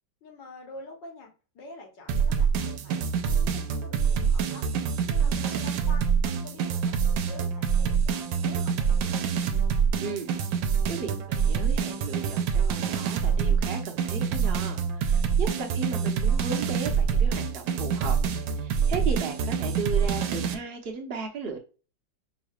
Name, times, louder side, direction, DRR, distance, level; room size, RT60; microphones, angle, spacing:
voice 1, 0.2-4.7 5.1-9.2, left 2 dB, 70° left, 1.8 m, -47 dB
sound 1, 2.1-20.5, right 6 dB, 85° right, 1.3 m, -26 dB
voice 2, 10.0-10.3 10.6-18.2 18.5-21.6, right 4 dB, 50° right, 0.7 m, -35 dB
5.5 x 3.1 x 2.3 m
omnidirectional pair, 2.0 m